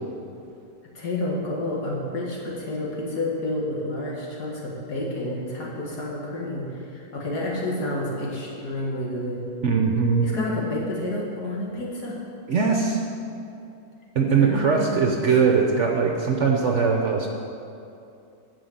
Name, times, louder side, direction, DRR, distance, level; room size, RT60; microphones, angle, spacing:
voice 1, 0.9-9.4 10.2-12.2 14.2-15.2, left 1 dB, 70° left, -4 dB, 2.4 m, -30 dB
voice 2, 9.6-10.4 12.5-13.0 14.1-17.3, right 5 dB, 55° right, 1 dB, 0.9 m, -21 dB
11.0 x 5.1 x 7.8 m, 2.6 s
omnidirectional pair, 1.8 m